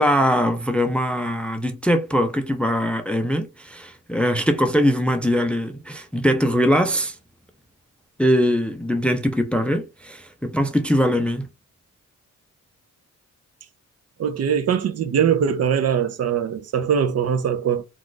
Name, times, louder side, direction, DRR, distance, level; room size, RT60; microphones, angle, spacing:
voice 1, 0.0-7.2 8.2-11.5, equal, 5° left, 0.4 m, -21 dB
voice 2, 14.2-17.8, right 8 dB, 55° right, 0.5 m, -21 dB
2.4 x 2.4 x 3.7 m
cardioid pair, 100°, 31 cm